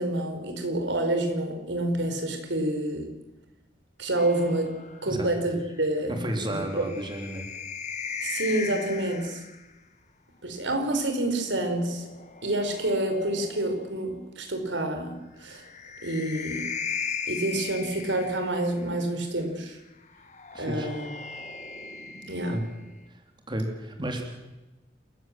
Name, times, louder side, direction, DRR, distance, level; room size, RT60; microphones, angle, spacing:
voice 1, 0.0-3.1 4.0-4.7 5.0-6.2 6.5-6.9 8.2-9.4 10.4-12.1 12.4-15.7 16.0-16.6 17.3-19.8 20.6-21.1 22.3-22.6, right 1 dB, 90° right, 5 dB, 5.0 m, -28 dB
sound 1, 4.2-9.7 11.1-14.1 15.4-18.9 20.1-23.1, left 6 dB, 40° left, 1.8 m, -38 dB
voice 2, 6.2-7.5 20.5-20.9 22.5-22.6 23.5-24.2, right 1 dB, 25° right, 3 dB, 3.4 m, -31 dB
29.0 x 15.5 x 7.7 m, 1.0 s
head